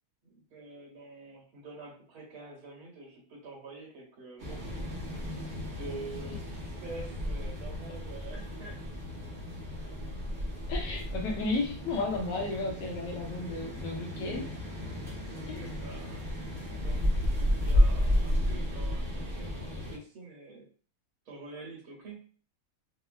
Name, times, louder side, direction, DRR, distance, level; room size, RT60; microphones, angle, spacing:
voice 1, 0.2-4.8 5.8-8.8 15.3-16.3 16.8-20.7 21.3-22.3, right 3 dB, 80° right, -3 dB, 2.3 m, -46 dB
sound 1, 4.4-20.0, left 1 dB, 30° right, 0.9 m, -32 dB
voice 2, 10.7-14.5 15.5-15.6, left 3 dB, 65° left, -1 dB, 1.3 m, -33 dB
4.5 x 2.0 x 3.1 m, 0.42 s
omnidirectional pair, 2.2 m